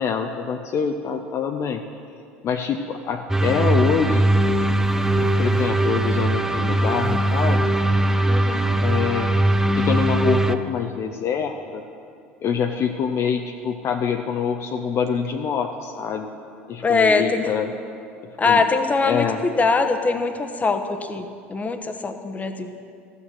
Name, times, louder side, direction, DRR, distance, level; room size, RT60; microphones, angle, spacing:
voice 1, 0.0-1.8 2.4-4.2 5.1-7.7 8.8-9.4 9.7-11.8 12.4-16.3 16.7-17.7 18.4-18.6 19.0-19.4, left 7 dB, 45° left, 5 dB, 0.7 m, -25 dB
sound 1, 3.3-10.5, right 1 dB, 5° right, 0.6 m, -20 dB
voice 2, 8.3-8.7 16.8-17.5 18.4-22.7, left 4 dB, 20° left, 7 dB, 1.0 m, -22 dB
14.0 x 6.6 x 7.7 m, 2.4 s
hypercardioid pair, 70°, 7 cm